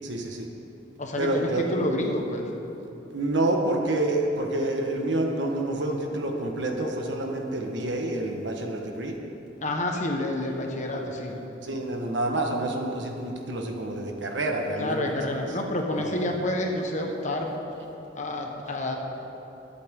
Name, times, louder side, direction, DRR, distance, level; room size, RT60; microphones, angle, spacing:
voice 1, 0.0-0.5 1.2-1.6 3.1-9.2 10.6-10.7 11.6-15.2 16.0-16.2, right 1 dB, 75° right, 2 dB, 1.5 m, -28 dB
voice 2, 1.0-2.5 9.6-11.4 14.8-17.6 18.2-18.9, left 1 dB, 40° left, 2 dB, 1.3 m, -29 dB
21.5 x 8.5 x 3.8 m, 3.0 s
head